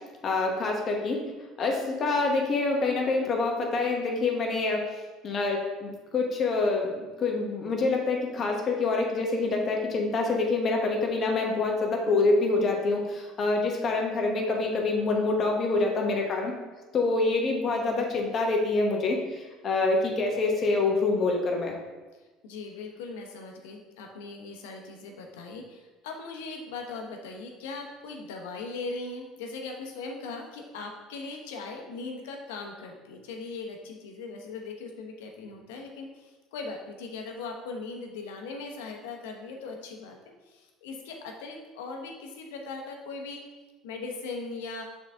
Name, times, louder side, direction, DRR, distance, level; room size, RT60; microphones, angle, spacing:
voice 1, 0.2-1.2 1.6-4.8 5.2-16.5 16.9-21.7, left 3 dB, 45° left, 1 dB, 1.3 m, -26 dB
voice 2, 22.2-40.2 40.4-43.4 43.8-44.8, left 3 dB, 90° left, 2 dB, 0.9 m, -39 dB
6.6 x 3.9 x 3.6 m, 1.2 s
supercardioid pair, 95°, 0 cm